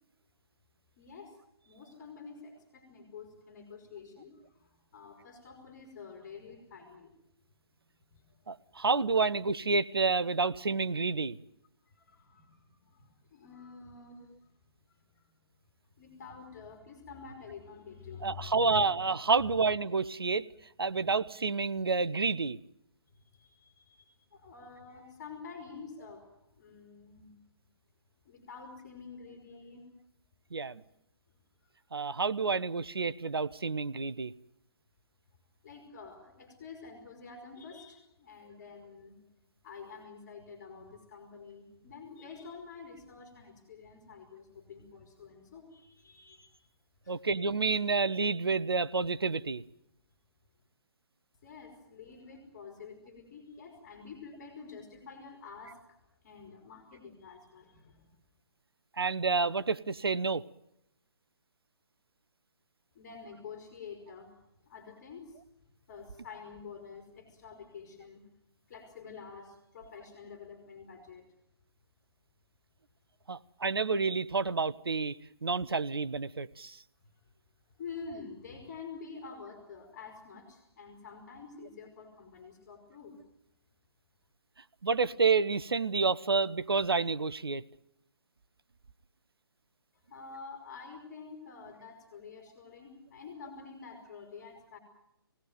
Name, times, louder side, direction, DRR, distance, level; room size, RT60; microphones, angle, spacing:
voice 1, 1.0-7.2 7.8-8.4 11.8-14.5 14.9-15.2 16.0-19.0 19.4-19.6 23.0-27.3 28.2-29.8 31.6-31.7 35.6-39.2 39.6-46.7 47.0-47.5 51.4-58.1 62.9-64.4 64.7-65.4 65.9-68.2 68.7-71.3 77.0-77.1 77.8-83.2 90.1-94.8, left 5 dB, 30° left, 3 dB, 4.3 m, -48 dB
voice 2, 8.5-11.4 18.2-20.5 20.8-22.6 30.5-30.8 31.9-34.3 47.1-49.6 59.0-60.4 73.3-75.1 75.4-76.8 84.8-87.6, right 4 dB, 70° right, 15 dB, 0.8 m, -29 dB
22.0 x 17.5 x 9.3 m, 0.81 s
figure-of-eight pair, 140°, 13 cm